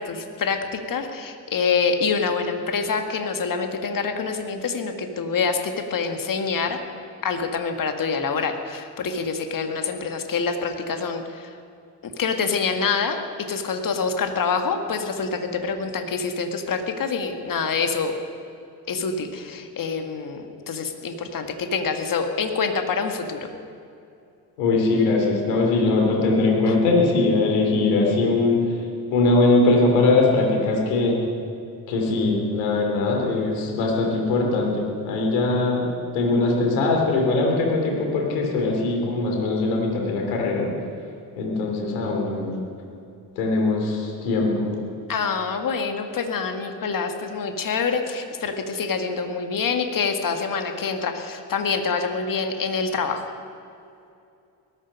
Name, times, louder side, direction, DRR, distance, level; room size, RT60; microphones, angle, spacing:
voice 1, 0.0-6.8 7.2-11.5 12.0-13.2 13.5-18.1 18.9-23.5 26.7-26.8 45.1-53.3, left 5 dB, 45° left, 5 dB, 2.0 m, -26 dB
voice 2, 24.6-28.8 29.1-31.2 31.9-35.9 36.1-40.7 41.4-42.5 43.3-44.7, left 3 dB, 70° left, 0 dB, 3.2 m, -21 dB
18.5 x 13.5 x 5.5 m, 2.5 s
figure-of-eight pair, 45°, 48 cm